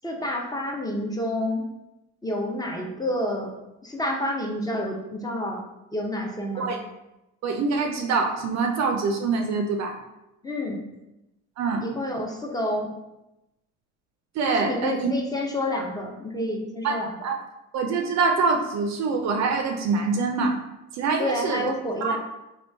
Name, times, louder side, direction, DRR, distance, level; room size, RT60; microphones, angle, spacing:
voice 1, 0.0-1.6 2.2-3.5 3.8-5.6 5.9-6.7 10.4-10.8 11.8-12.9 14.5-17.1 21.2-22.2, left 1 dB, 10° left, 0 dB, 0.5 m, -29 dB
voice 2, 7.4-9.9 11.6-11.9 14.4-15.1 16.8-17.4 17.7-20.6 20.9-21.7 22.0-22.2, right 4 dB, 45° right, 3 dB, 0.5 m, -25 dB
3.0 x 2.3 x 3.3 m, 0.94 s
supercardioid pair, 90°, 39 cm